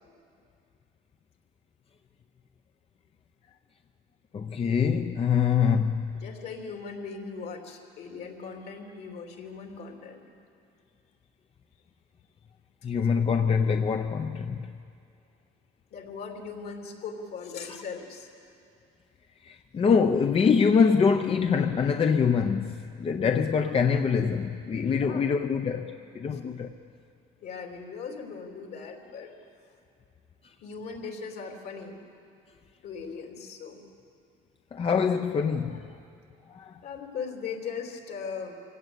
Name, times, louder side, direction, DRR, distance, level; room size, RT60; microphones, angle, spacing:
voice 1, 4.3-6.2 12.8-14.7 19.4-26.7 34.7-35.8 36.5-36.8, left 6 dB, 35° left, 0.8 m, -24 dB
voice 2, 6.2-10.3 15.9-18.5 24.9-25.2 26.3-26.4 27.4-29.3 30.6-32.0 32.8-33.8 35.1-35.2 36.8-38.5, left 5 dB, 70° left, 3.4 m, -39 dB
25.0 x 17.0 x 8.3 m
cardioid pair, 110°, 17 cm